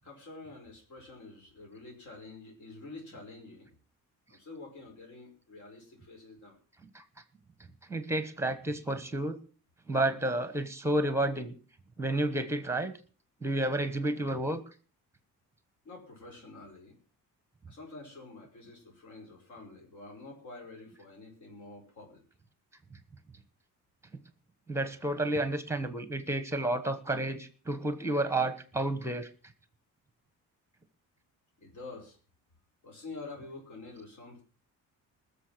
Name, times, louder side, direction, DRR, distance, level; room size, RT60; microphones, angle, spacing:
voice 1, 0.0-3.7 4.3-6.6 15.8-17.0 17.7-22.2 31.6-32.2 32.8-34.4, left 3 dB, 60° left, 1 dB, 5.1 m, -48 dB
voice 2, 7.9-9.4 9.9-11.6 12.0-12.9 13.4-14.6 24.7-29.3, right 1 dB, 10° right, 12 dB, 1.2 m, -31 dB
20.0 x 7.0 x 6.1 m, 0.39 s
cardioid pair, 170°, 33 cm